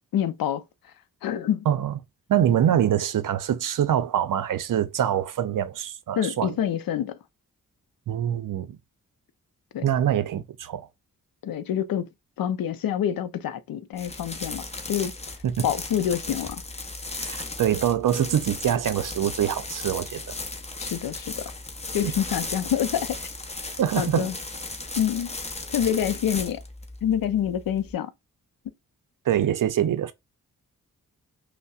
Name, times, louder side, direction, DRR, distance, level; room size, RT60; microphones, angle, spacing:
voice 1, 0.1-0.6 1.2-1.7 6.2-7.2 9.7-9.8 11.4-12.1 12.4-15.1 15.6-16.6 20.8-21.4 21.9-23.3 24.0-24.4 25.0-25.3 25.7-26.6 27.0-28.1, left 9 dB, 75° left, 0.5 m, -27 dB
voice 2, 1.7-2.0 2.3-6.6 8.1-8.8 9.8-10.9 15.4-15.6 17.2-20.2 22.0-22.1 23.8-24.3 29.3-30.1, right 10 dB, 65° right, 0.5 m, -24 dB
sound 1, 13.9-27.9, left 2 dB, 20° left, 0.7 m, -36 dB
5.4 x 2.1 x 2.3 m
cardioid pair, 55°, 35 cm